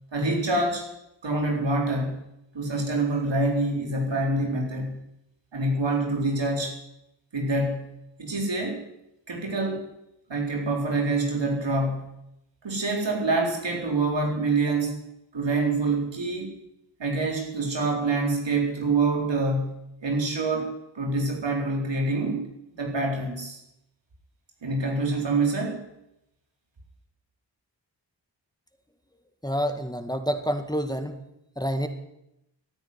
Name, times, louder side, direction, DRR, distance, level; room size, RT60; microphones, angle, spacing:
voice 1, 0.1-0.8 1.2-2.3 2.5-5.0 5.5-6.8 7.3-7.9 8.2-8.8 9.3-9.9 10.3-12.2 12.6-15.0 15.3-16.5 17.0-20.7 20.9-23.6 24.6-25.8, right 2 dB, 80° right, 0 dB, 4.2 m, -26 dB
voice 2, 29.4-31.2 31.6-31.9, equal, 10° left, 7 dB, 1.8 m, -28 dB
14.0 x 9.6 x 9.7 m, 0.84 s
cardioid pair, 40°, 43 cm